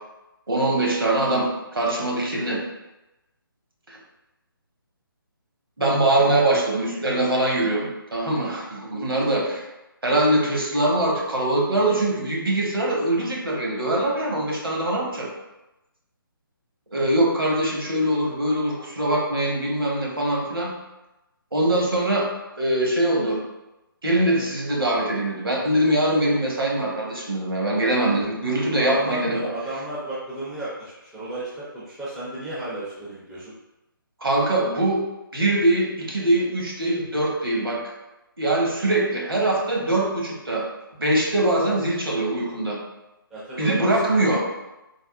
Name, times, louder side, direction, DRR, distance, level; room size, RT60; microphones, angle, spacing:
voice 1, 0.5-2.6 3.9-4.0 5.8-9.7 10.0-15.3 16.9-20.7 21.5-22.3 22.6-23.4 24.0-29.6 34.2-35.0 35.3-37.8 38.4-40.7 41.0-42.8 43.6-44.4, right 1 dB, 80° right, -2 dB, 0.9 m, -22 dB
voice 2, 28.6-33.5 43.3-43.9 44.2-44.4, right 1 dB, 5° right, -10 dB, 0.4 m, -33 dB
3.4 x 2.1 x 2.3 m, 0.96 s
figure-of-eight pair, 145°, 12 cm